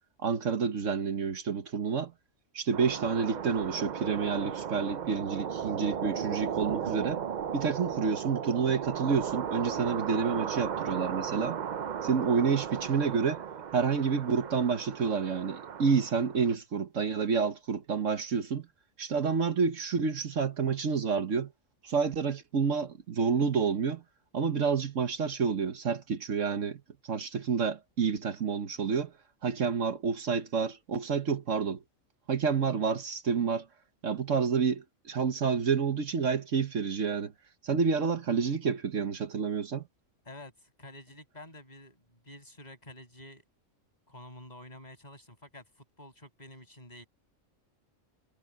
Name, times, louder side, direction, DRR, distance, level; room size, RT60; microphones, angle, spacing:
voice 1, 0.2-2.1 2.5-7.2 7.5-11.6 12.0-13.4 13.7-18.6 19.0-21.5 21.8-24.0 24.3-26.8 27.1-29.1 29.4-31.8 32.3-33.7 34.0-37.3 37.6-39.8, right 5 dB, 70° right, 1.5 m, -29 dB
sound 1, 2.7-16.5, right 8 dB, 50° right, 0.6 m, -36 dB
voice 2, 40.3-43.4 44.1-47.1, left 1 dB, 30° left, 7.0 m, -49 dB
omnidirectional pair, 1.4 m